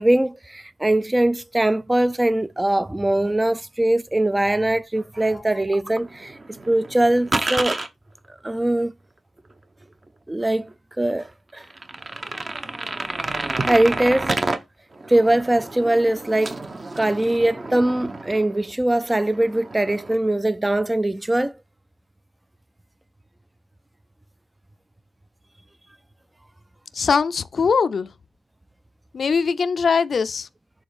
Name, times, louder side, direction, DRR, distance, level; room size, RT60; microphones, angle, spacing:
voice 1, 0.0-6.4 6.7-7.8 8.4-8.9 10.3-10.7 11.0-11.6 13.6-14.4 15.1-16.6 17.0-21.5, right 1 dB, 15° right, 0.4 m, -21 dB
sound 1, 5.9-7.9 9.5-9.6 10.1-10.2 10.7-10.8 11.1-11.2 11.6-14.6 14.9-18.7 19.0-20.1, right 2 dB, 35° right, 1.0 m, -30 dB
voice 2, 26.9-28.1 29.1-30.5, left 5 dB, 60° left, 0.5 m, -21 dB
7.1 x 3.9 x 4.9 m
cardioid pair, 90°, 0 cm